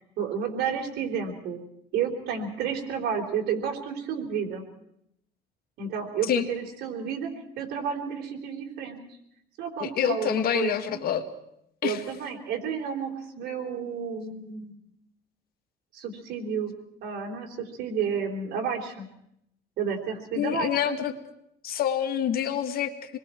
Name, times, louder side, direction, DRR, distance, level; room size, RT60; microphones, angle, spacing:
voice 1, 0.2-1.6 1.9-4.7 5.8-7.3 7.6-9.0 9.6-11.0 11.8-14.8 15.9-16.8 17.0-19.1 19.8-21.0, right 7 dB, 75° right, 2 dB, 3.7 m, -31 dB
voice 2, 9.8-11.3 11.8-12.0 20.4-21.1 21.6-23.2, left 9 dB, 65° left, 8 dB, 1.8 m, -27 dB
26.5 x 21.5 x 4.5 m, 0.76 s
cardioid pair, 110°, 17 cm